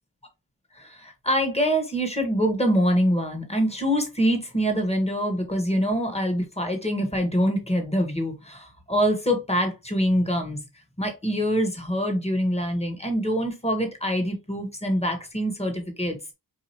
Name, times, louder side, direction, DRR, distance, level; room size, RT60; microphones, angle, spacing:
voice 1, 0.7-10.6 11.0-16.2, equal, 15° left, 1.4 m, -25 dB
4.8 x 2.6 x 2.8 m
cardioid pair, 50°, 40 cm